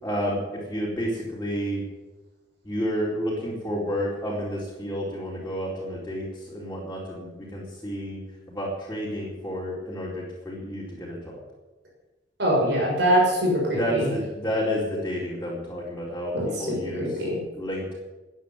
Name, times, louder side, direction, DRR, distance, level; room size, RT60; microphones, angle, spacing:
voice 1, 0.0-1.8 2.6-8.2 8.5-11.4 13.7-17.1 17.5-17.9, equal, 15° left, -7 dB, 4.4 m, -30 dB
voice 2, 12.4-14.1 16.3-17.4, equal, 65° right, -3 dB, 6.5 m, -23 dB
14.5 x 10.0 x 9.7 m, 1.1 s
head